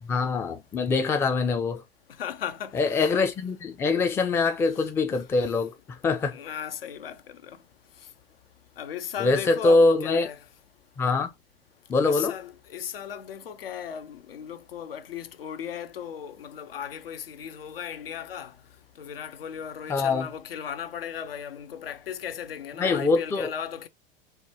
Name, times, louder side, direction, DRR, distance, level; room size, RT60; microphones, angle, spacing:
voice 1, 0.0-1.8 2.7-6.4 9.2-10.3 11.0-11.3 11.9-12.4 19.9-20.3 22.8-23.5, left 3 dB, 10° left, 0.4 m, -24 dB
voice 2, 2.2-3.0 4.8-4.9 6.3-7.5 8.8-10.4 12.0-18.5 19.0-23.9, left 8 dB, 70° left, 0.6 m, -36 dB
4.8 x 2.2 x 2.7 m
figure-of-eight pair, 85°, 30 cm